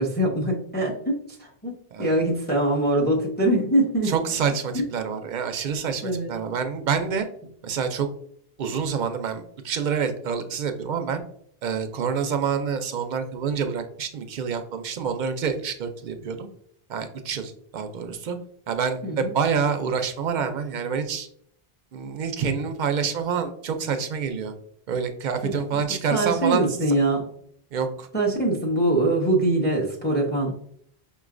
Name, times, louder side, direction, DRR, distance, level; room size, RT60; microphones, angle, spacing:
voice 1, 0.0-1.7 2.0-4.1 4.7-4.8 6.0-6.3 19.0-19.3 25.4-25.8 26.1-27.2 28.1-30.6, right 1 dB, 10° left, -2 dB, 0.7 m, -23 dB
voice 2, 4.0-7.3 7.6-8.1 8.6-11.2 11.6-16.5 16.9-18.4 18.7-21.3 21.9-24.5 24.9-26.7 27.7-28.1, right 6 dB, 60° right, 7 dB, 0.6 m, -27 dB
5.4 x 3.0 x 2.5 m, 0.66 s
omnidirectional pair, 1.0 m